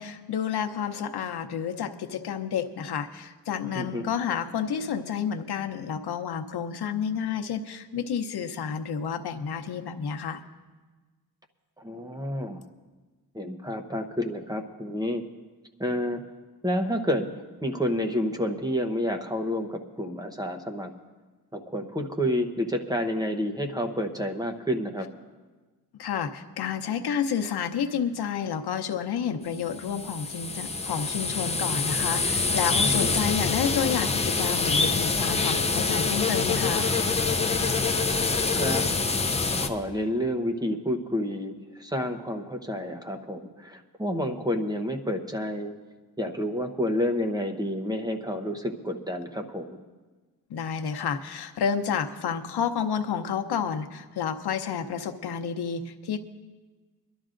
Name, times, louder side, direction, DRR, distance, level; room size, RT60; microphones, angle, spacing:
voice 1, 0.0-10.4 26.0-36.9 50.5-56.2, left 7 dB, 85° left, 5 dB, 0.8 m, -30 dB
voice 2, 11.8-12.6 13.3-15.2 15.8-16.2 16.6-17.3 17.6-20.9 21.5-25.1 32.8-33.1 38.5-38.8 39.6-45.7 46.2-49.8, equal, 10° right, 4 dB, 0.8 m, -29 dB
sound 1, 29.6-39.7, left 4 dB, 15° left, 0.5 m, -26 dB
24.0 x 12.0 x 2.5 m, 1.3 s
wide cardioid pair, 155°, 38 cm